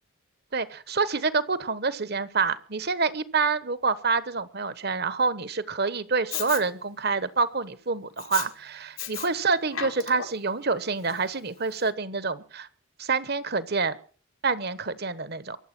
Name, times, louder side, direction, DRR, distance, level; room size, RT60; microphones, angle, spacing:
voice 1, 0.5-12.7 13.0-14.0 14.4-15.6, right 4 dB, 50° right, 15 dB, 1.1 m, -27 dB
Respiratory sounds, 6.3-6.6 8.2-8.5 9.0-9.3 9.6-10.5 11.1-11.2, left 9 dB, 80° left, 2.1 m, -34 dB
24.0 x 8.0 x 6.0 m, 0.41 s
head